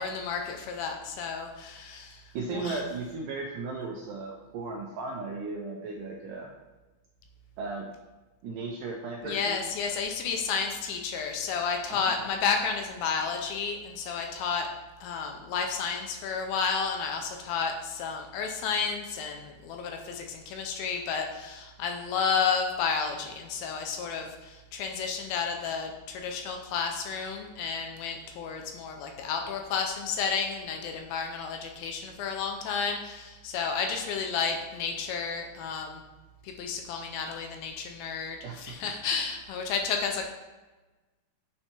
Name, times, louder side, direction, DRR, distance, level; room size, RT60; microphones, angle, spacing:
voice 1, 0.0-2.2 2.5-2.8 9.2-14.7 15.0-36.0 36.4-40.2, left 5 dB, 80° left, 3 dB, 2.3 m, -31 dB
voice 2, 2.3-6.5 7.6-7.9 8.4-9.6 11.9-12.2 38.4-38.8, right 3 dB, 90° right, 0 dB, 1.9 m, -36 dB
8.8 x 4.4 x 2.9 m, 1.2 s
omnidirectional pair, 4.3 m